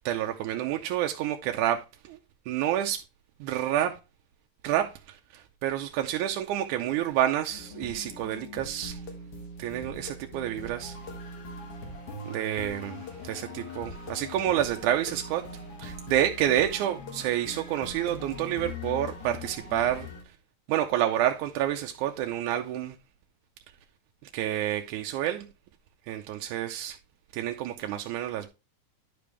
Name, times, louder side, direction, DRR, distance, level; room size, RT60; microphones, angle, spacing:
voice 1, 0.1-2.2 2.5-3.0 3.4-4.0 4.6-9.0 9.6-11.0 12.3-15.5 15.8-20.1 20.7-23.0 24.2-25.5 26.1-27.0 27.3-28.5, right 11 dB, 90° right, 2.1 m, -29 dB
sound 1, 7.5-20.2, left 2 dB, 55° left, 2.3 m, -41 dB
11.0 x 5.2 x 3.2 m
omnidirectional pair, 3.5 m